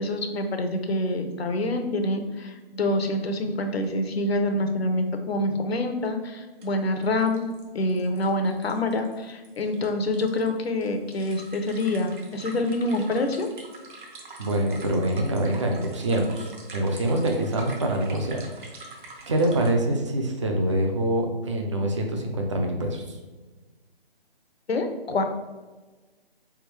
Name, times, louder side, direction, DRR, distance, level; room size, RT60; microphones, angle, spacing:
voice 1, 0.0-7.5 7.7-13.5 24.7-25.2, left 1 dB, 80° left, 6 dB, 0.8 m, -26 dB
sound 1, 3.8-3.9 4.2-4.3 6.1-6.2 6.6-6.7 7.0-19.7, right 2 dB, 55° right, 0.9 m, -45 dB
voice 2, 14.4-18.9 19.3-23.2, right 1 dB, 30° right, 2 dB, 0.5 m, -25 dB
3.7 x 3.5 x 3.2 m, 1.3 s
hypercardioid pair, 155°, 31 cm